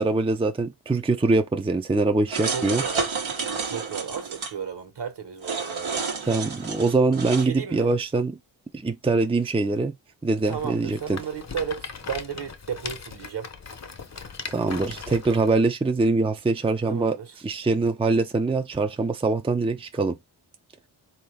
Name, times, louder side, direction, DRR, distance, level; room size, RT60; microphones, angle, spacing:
voice 1, 0.0-2.8 6.3-8.4 8.7-9.9 10.2-11.2 14.5-20.2, right 3 dB, 10° right, 0.6 m, -23 dB
sound 1, 2.3-4.5 5.4-7.5, right 4 dB, 75° right, 1.3 m, -30 dB
voice 2, 2.5-3.0 3.7-6.0 7.4-7.9 10.5-13.5 16.8-17.3, right 7 dB, 55° right, 1.5 m, -34 dB
Rattle, 10.5-15.6, left 5 dB, 35° left, 0.8 m, -39 dB
3.7 x 2.9 x 3.5 m
cardioid pair, 50°, 47 cm